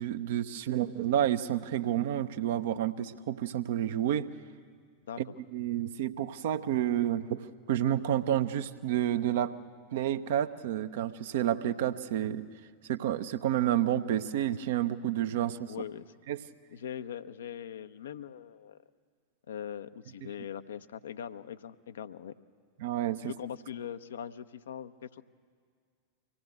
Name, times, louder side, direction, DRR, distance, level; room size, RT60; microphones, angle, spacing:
voice 1, 0.0-4.3 5.2-5.3 5.5-9.5 9.9-12.4 12.9-15.7 16.3-16.4 20.2-20.3 22.8-23.3, right 11 dB, 55° right, 11 dB, 0.8 m, -30 dB
voice 2, 15.7-16.1 16.7-18.8 19.5-22.3 23.2-25.2, left 8 dB, 65° left, 11 dB, 0.7 m, -41 dB
24.5 x 17.5 x 8.1 m, 2.1 s
figure-of-eight pair, 90°, 0 cm